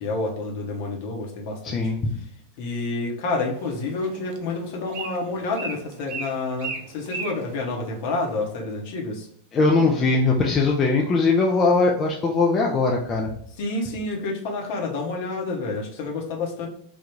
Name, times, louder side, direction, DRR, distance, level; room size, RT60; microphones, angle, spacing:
voice 1, 0.0-1.8 2.6-9.3 13.6-16.7, left 3 dB, 50° left, 0 dB, 0.8 m, -29 dB
voice 2, 1.6-2.0 9.5-13.3, left 3 dB, 25° left, -1 dB, 0.4 m, -20 dB
Bird, 3.4-8.5, right 4 dB, 45° right, 0.5 m, -38 dB
3.5 x 2.3 x 3.0 m, 0.64 s
figure-of-eight pair, 90°, 0 cm